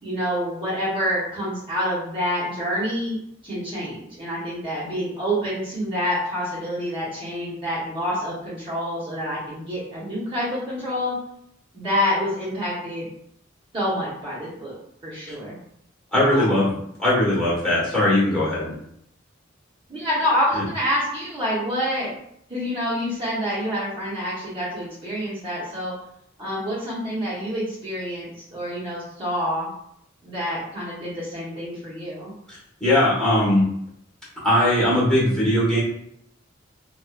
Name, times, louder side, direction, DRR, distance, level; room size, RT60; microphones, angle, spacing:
voice 1, 0.0-3.2 3.4-11.2 11.7-13.1 13.7-14.8 15.0-15.5 16.3-16.6 19.9-22.1 22.5-25.9 26.4-29.7 30.2-32.3, equal, 25° right, -9 dB, 0.8 m, -27 dB
voice 2, 16.1-16.7 17.0-18.8 20.5-20.6 32.5-33.7 34.4-35.8, left 1 dB, 5° left, -9 dB, 1.1 m, -20 dB
2.6 x 2.3 x 2.3 m, 0.70 s
head